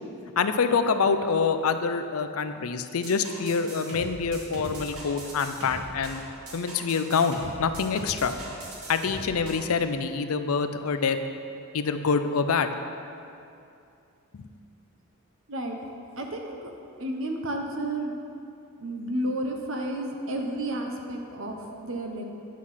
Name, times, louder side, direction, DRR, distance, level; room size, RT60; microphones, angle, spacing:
voice 1, 0.4-6.2 6.5-8.3 8.9-11.2 11.7-12.7 14.3-14.5, left 5 dB, 85° left, 9 dB, 0.6 m, -26 dB
sound 1, 3.0-9.7, right 1 dB, 85° right, 2.2 m, -40 dB
voice 2, 15.5-15.8 16.2-16.7 17.0-18.1 18.8-22.2, right 1 dB, 65° right, 2 dB, 1.1 m, -31 dB
10.5 x 6.3 x 5.7 m, 2.6 s
head